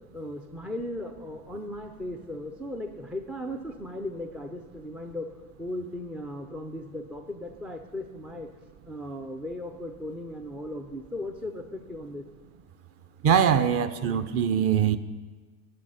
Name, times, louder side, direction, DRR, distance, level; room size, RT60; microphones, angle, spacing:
voice 1, 0.1-5.3 5.6-8.5 8.9-12.2, left 1 dB, 5° right, 5 dB, 0.3 m, -37 dB
voice 2, 13.2-15.0, right 8 dB, 35° right, 11 dB, 0.7 m, -22 dB
12.5 x 7.5 x 5.6 m, 1.4 s
supercardioid pair, 110°, 43 cm